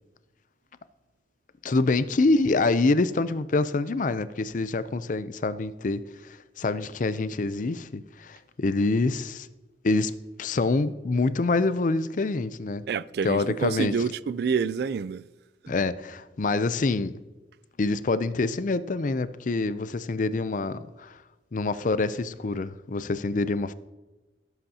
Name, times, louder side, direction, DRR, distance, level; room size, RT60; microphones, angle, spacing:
voice 1, 1.6-9.5 9.8-10.1 10.4-12.8 13.2-13.9 15.7-17.2 17.8-21.2 21.5-23.7, left 3 dB, 45° left, 0.5 m, -26 dB
voice 2, 12.9-15.2 15.6-15.7, right 5 dB, 60° right, 0.3 m, -28 dB
17.0 x 8.1 x 2.8 m
head